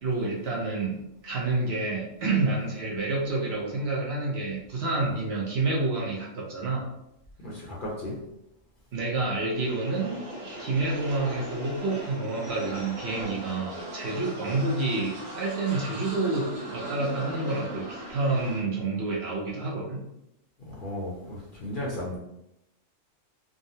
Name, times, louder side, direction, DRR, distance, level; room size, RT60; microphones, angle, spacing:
voice 1, 0.0-1.0 1.2-6.9 8.9-10.2 10.6-20.0, right 3 dB, 60° right, -3 dB, 0.8 m, -28 dB
voice 2, 7.4-8.2 20.6-22.2, left 1 dB, 50° left, -4 dB, 0.7 m, -35 dB
sound 1, 9.5-18.6, right 1 dB, 75° right, 1.4 m, -39 dB
3.6 x 2.0 x 2.6 m, 0.84 s
omnidirectional pair, 1.4 m